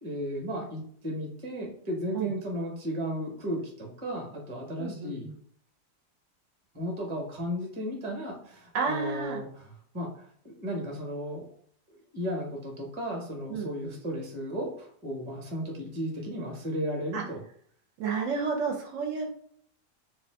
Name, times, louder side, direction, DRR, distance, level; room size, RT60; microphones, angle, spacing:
voice 1, 0.0-5.3 6.7-11.4 11.9-17.4, equal, 25° right, 0 dB, 0.8 m, -35 dB
voice 2, 4.8-5.4 8.7-9.4 13.5-14.0 17.1-17.2 18.0-19.3, right 5 dB, 75° right, 1 dB, 0.9 m, -31 dB
2.5 x 2.4 x 3.4 m, 0.62 s
omnidirectional pair, 1.4 m